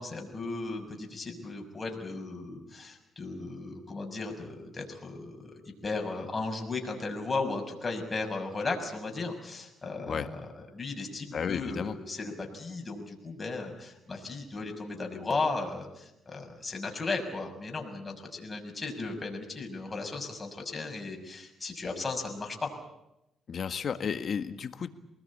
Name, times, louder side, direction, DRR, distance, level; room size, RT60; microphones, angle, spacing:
voice 1, 0.0-10.5 10.7-22.7, left 3 dB, 30° left, 3 dB, 6.2 m, -36 dB
voice 2, 11.3-11.9 23.5-24.9, left 6 dB, 50° left, 10 dB, 1.7 m, -32 dB
24.5 x 20.0 x 8.6 m, 0.87 s
cardioid pair, 90°, 0 cm